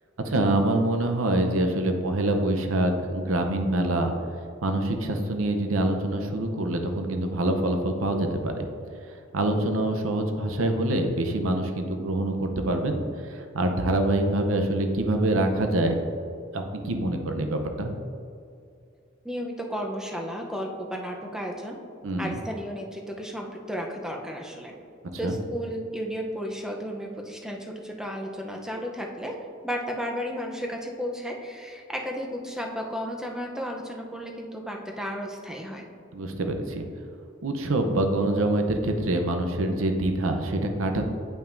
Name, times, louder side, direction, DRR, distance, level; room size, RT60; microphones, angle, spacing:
voice 1, 0.2-4.1 4.6-8.7 9.1-16.0 16.5-18.0 22.0-22.4 25.2-25.3 36.1-36.9 37.4-41.1, right 1 dB, 85° right, 5 dB, 0.7 m, -25 dB
voice 2, 19.2-21.8 22.2-24.7 25.2-29.4 29.6-35.9, equal, 5° right, 1 dB, 0.6 m, -33 dB
8.9 x 5.6 x 2.6 m, 2.4 s
head